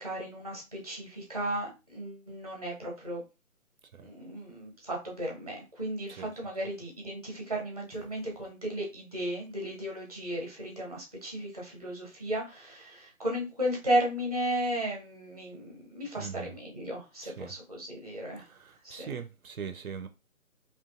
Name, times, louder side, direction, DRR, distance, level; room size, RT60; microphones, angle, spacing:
voice 1, 0.0-3.2 4.0-19.2, right 1 dB, 30° right, 0.6 m, -35 dB
voice 2, 16.2-16.5 17.2-17.5 18.5-20.1, right 7 dB, 75° right, 0.5 m, -41 dB
2.7 x 2.3 x 2.4 m
figure-of-eight pair, 155°, 43 cm